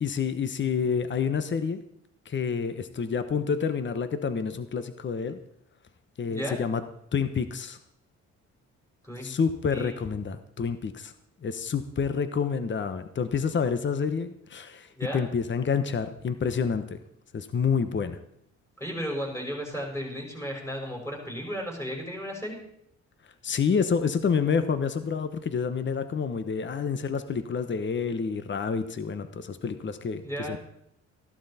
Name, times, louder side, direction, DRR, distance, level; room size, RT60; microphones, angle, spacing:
voice 1, 0.0-1.8 2.3-5.4 6.2-6.8 7.1-7.8 9.2-11.1 11.4-14.9 15.1-17.0 17.3-18.2 23.4-30.2 30.5-30.6, left 6 dB, 40° left, 10 dB, 1.2 m, -28 dB
voice 2, 15.0-15.3 18.8-22.6 30.2-30.6, equal, 10° left, -1 dB, 5.7 m, -34 dB
15.0 x 11.5 x 4.3 m, 0.72 s
cardioid pair, 90°, 30 cm